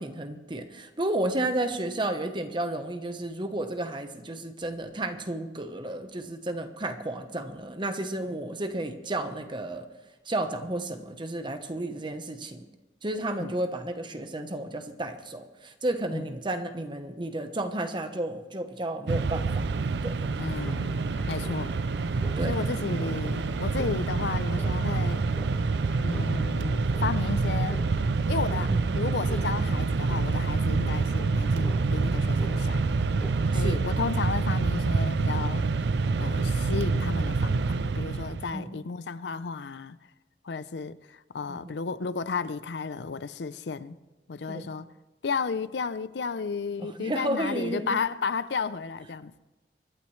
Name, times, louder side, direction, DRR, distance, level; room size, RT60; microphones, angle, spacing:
voice 1, 0.0-9.9 10.3-12.7 13.0-20.3 22.4-22.7 28.7-28.9 33.5-33.8 38.5-38.7 41.5-41.8 44.5-44.7 46.8-48.0, right 1 dB, 25° right, 1.0 m, -32 dB
Mechanisms, 19.1-38.5, right 4 dB, 70° right, 0.5 m, -27 dB
sound 1, 20.3-33.7, equal, 5° left, 2.9 m, -46 dB
voice 2, 20.4-21.0 21.3-21.8 22.5-25.2 26.0-27.9 28.3-32.8 33.5-35.7 36.2-40.0 40.4-44.0 44.3-44.9 45.2-49.4, left 5 dB, 75° left, 0.5 m, -33 dB
24.5 x 11.5 x 3.2 m
head